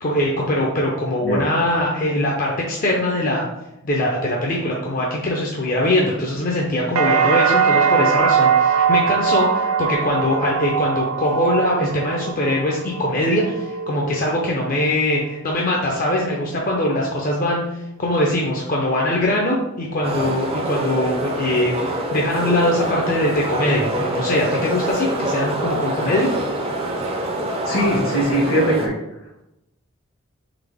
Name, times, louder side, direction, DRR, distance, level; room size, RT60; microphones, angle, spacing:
voice 1, 0.0-3.4 3.8-26.3, left 1 dB, 40° left, -2 dB, 0.5 m, -22 dB
sound 1, 7.0-14.9 15.2-15.9, right 6 dB, 85° right, 0.4 m, -21 dB
sound 2, 20.0-28.9, right 1 dB, 25° right, 0.5 m, -25 dB
voice 2, 27.7-28.9, equal, 70° left, -2 dB, 1.6 m, -20 dB
3.9 x 3.3 x 3.4 m, 0.90 s
head